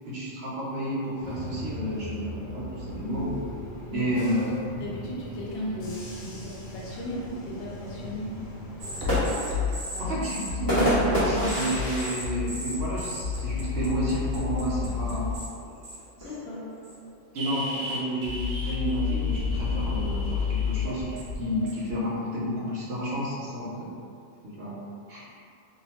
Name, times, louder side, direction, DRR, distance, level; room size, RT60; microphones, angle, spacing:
voice 1, 0.1-3.3 3.9-4.6 10.0-15.3 17.3-23.9 24.4-24.8 25.1-25.3, right 1 dB, 60° right, -7 dB, 0.8 m, -30 dB
Bus / Engine, 1.2-9.2, equal, 90° left, 1.0 m, -39 dB
voice 2, 4.8-8.4 9.9-10.2 16.2-16.6, equal, 60° left, -5 dB, 0.8 m, -36 dB
sound 1, 8.8-13.4 13.8-13.9 14.2-14.7 15.5-17.1, equal, 20° left, 0.7 m, -29 dB
sound 2, 8.8-15.5 15.8-16.2 16.8-17.0 17.4-21.9, left 5 dB, 85° right, 1.0 m, -30 dB
2.7 x 2.0 x 2.8 m, 2.3 s
omnidirectional pair, 1.3 m